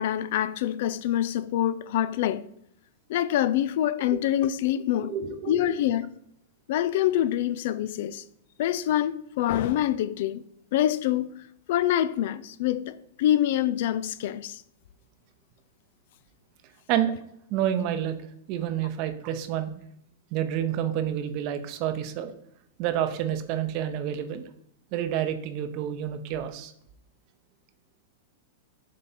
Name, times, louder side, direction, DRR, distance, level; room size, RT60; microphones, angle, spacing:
voice 1, 0.0-2.4 3.1-5.1 5.5-6.1 6.7-8.2 8.6-10.4 10.7-11.3 11.7-14.6, left 12 dB, 60° left, 0.3 m, -25 dB
voice 2, 5.0-5.8 16.9-17.1 17.5-18.1 18.5-19.7 20.3-22.3 22.8-24.4 24.9-26.7, right 10 dB, 50° right, 0.7 m, -29 dB
7.4 x 3.3 x 4.2 m
hypercardioid pair, 110°, 0 cm